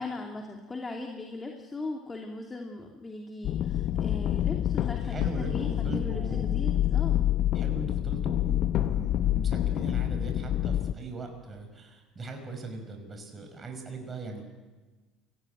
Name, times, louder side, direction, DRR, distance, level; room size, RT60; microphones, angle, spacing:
voice 1, 0.0-7.2, left 2 dB, 20° left, 2 dB, 2.8 m, -39 dB
sound 1, 3.4-10.9, left 12 dB, 55° left, 0.9 m, -27 dB
voice 2, 5.0-6.7 7.5-14.5, right 3 dB, 30° right, 4 dB, 5.4 m, -40 dB
23.0 x 18.0 x 9.3 m, 1.2 s
hypercardioid pair, 75°, 0 cm